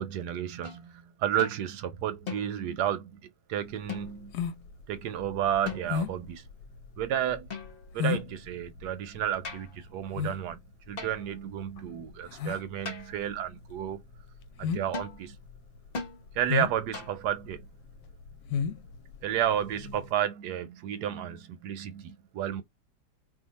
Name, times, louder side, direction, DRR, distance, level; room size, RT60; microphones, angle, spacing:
voice 1, 0.0-3.2 3.5-4.3 4.9-6.4 7.0-7.5 7.9-10.6 10.9-14.0 14.6-15.4 16.3-17.6 19.2-22.6, right 10 dB, 75° right, 1.0 m, -32 dB
sound 1, 0.6-0.8 1.4-1.6 2.3-2.8 3.9-4.4 5.7-6.2 7.5-8.0 9.4-9.8 11.0-11.4 12.9-13.3 14.9-15.2 15.9-16.2 16.9-17.3, left 4 dB, 40° left, 0.8 m, -39 dB
sound 2, 3.7-20.1, left 6 dB, 75° left, 1.2 m, -35 dB
2.8 x 2.5 x 4.0 m
omnidirectional pair, 2.0 m